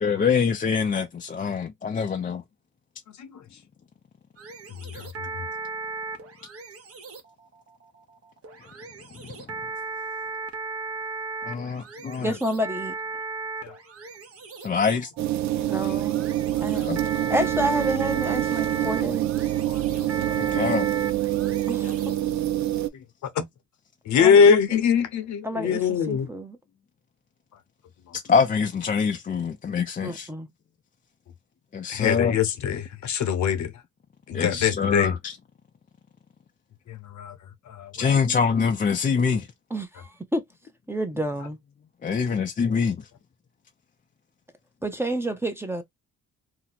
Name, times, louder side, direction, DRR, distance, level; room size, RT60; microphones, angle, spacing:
voice 1, 0.0-2.4 11.4-12.3 14.6-15.1 16.9-17.0 20.4-20.9 28.3-30.3 31.7-32.4 34.3-35.4 38.0-39.5 42.0-43.0, left 6 dB, 30° left, 0.4 m, -24 dB
sound 1, 4.4-22.4, right 3 dB, 50° right, 0.9 m, -36 dB
voice 2, 12.2-12.9 15.6-16.2 16.6-16.8 17.3-19.3 21.7-22.1 24.2-24.6 25.4-26.6 30.0-30.5 39.7-40.4 40.9-41.6 44.8-45.8, right 1 dB, 10° right, 0.7 m, -29 dB
sound 2, 15.2-22.9, right 14 dB, 65° right, 0.4 m, -26 dB
voice 3, 19.7-20.1 20.5-20.6 21.8-21.9 22.9-23.0 23.4-23.5 24.1-26.3 31.9-33.7 34.3-35.1 36.9-37.3 37.7-38.3 42.3-42.4, left 6 dB, 70° left, 0.9 m, -23 dB
2.8 x 2.1 x 3.9 m
cardioid pair, 90°, 30 cm